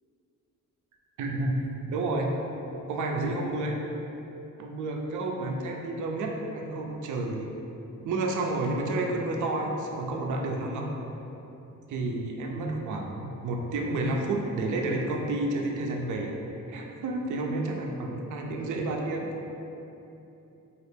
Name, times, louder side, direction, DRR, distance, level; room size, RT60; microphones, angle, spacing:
voice 1, 1.2-1.6 1.9-2.3 2.9-3.8 4.6-7.5 8.0-10.9 11.9-16.4 16.7-19.3, right 2 dB, 65° right, 1 dB, 0.4 m, -30 dB
3.0 x 2.4 x 3.2 m, 3.0 s
wide cardioid pair, 150°, 32 cm